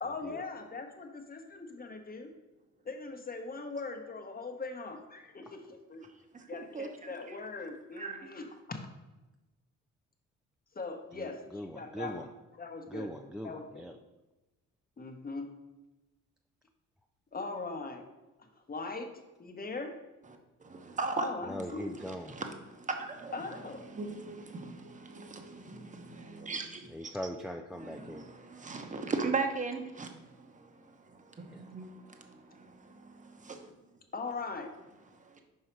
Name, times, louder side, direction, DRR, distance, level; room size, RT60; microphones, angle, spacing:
voice 1, 0.0-2.3 2.8-6.1 6.5-8.8 10.7-12.3 12.6-13.1 13.4-13.8 15.0-15.5 17.3-18.0 18.4-19.1 19.4-19.9 21.2-21.9 23.3-23.9 34.1-34.7, left 3 dB, 30° left, 4 dB, 1.0 m, -40 dB
voice 2, 6.3-7.4 8.0-8.3 20.6-21.3 22.0-23.3 23.8-27.1 27.8-33.7 35.1-35.4, right 4 dB, 25° right, 5 dB, 0.9 m, -39 dB
voice 3, 11.1-12.3 12.9-14.0 21.4-22.3 26.9-28.3 31.5-31.7, equal, ahead, 4 dB, 0.3 m, -41 dB
5.6 x 4.8 x 4.5 m, 1.1 s
cardioid pair, 90°, 30 cm